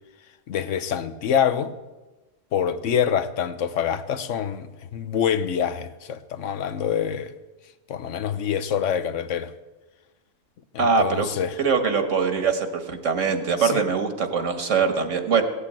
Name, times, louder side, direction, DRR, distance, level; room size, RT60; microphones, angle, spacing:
voice 1, 0.5-1.7 2.5-7.4 7.9-9.5 10.7-11.6 13.6-13.8, left 8 dB, 80° left, 1.2 m, -26 dB
voice 2, 10.8-11.3 11.6-15.4, right 5 dB, 80° right, 1.7 m, -22 dB
16.5 x 8.5 x 8.6 m
omnidirectional pair, 1.3 m